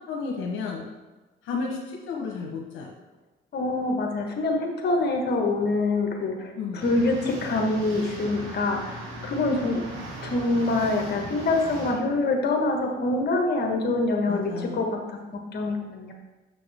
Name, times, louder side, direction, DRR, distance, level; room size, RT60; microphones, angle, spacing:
voice 1, 0.1-0.8 1.4-2.9 6.6-6.8 14.3-14.8, left 4 dB, 85° left, 0 dB, 0.9 m, -32 dB
voice 2, 3.5-9.8 10.2-15.0 15.3-16.1, left 2 dB, 55° left, 2 dB, 1.2 m, -25 dB
sound 1, 6.8-11.9, right 1 dB, 80° right, 1.8 m, -38 dB
6.3 x 6.2 x 3.4 m, 1.2 s
cardioid pair, 90°, 20 cm